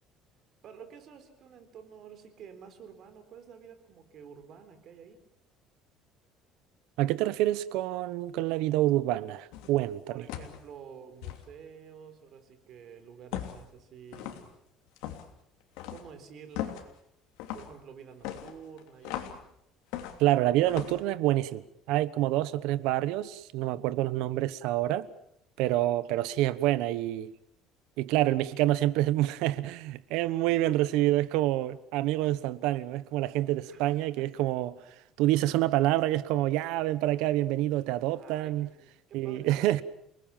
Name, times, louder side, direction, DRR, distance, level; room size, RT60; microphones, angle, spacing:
voice 1, 0.6-5.2 10.1-14.5 15.9-16.8 17.5-19.4 33.7-34.2 38.1-39.7, right 7 dB, 45° right, 3.9 m, -50 dB
voice 2, 7.0-10.2 20.2-21.6 21.9-25.1 25.6-27.3 28.0-34.8 35.2-38.7 39.1-39.8, right 15 dB, 80° right, 1.1 m, -27 dB
sound 1, 9.5-9.8 10.3-10.6 11.2-11.4 13.3-13.7 14.1-14.5 15.0-15.3 15.8-16.1 16.5-16.9 17.4-17.7 18.2-19.4 19.9-20.3 20.7-21.0, left 12 dB, 90° left, 3.0 m, -38 dB
29.0 x 19.5 x 7.4 m
cardioid pair, 160°, 0 cm